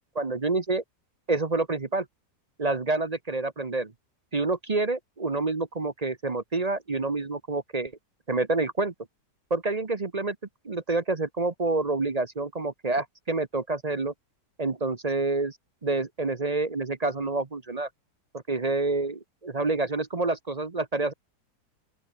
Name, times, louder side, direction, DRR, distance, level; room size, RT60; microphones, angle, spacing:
voice 1, 0.1-0.8 1.3-2.1 2.6-3.9 4.3-7.9 8.3-8.9 9.5-10.4 10.6-14.1 14.6-15.6 15.8-17.9 18.5-21.1, right 3 dB, 30° right, 0.9 m, -28 dB
open air
omnidirectional pair, 1.8 m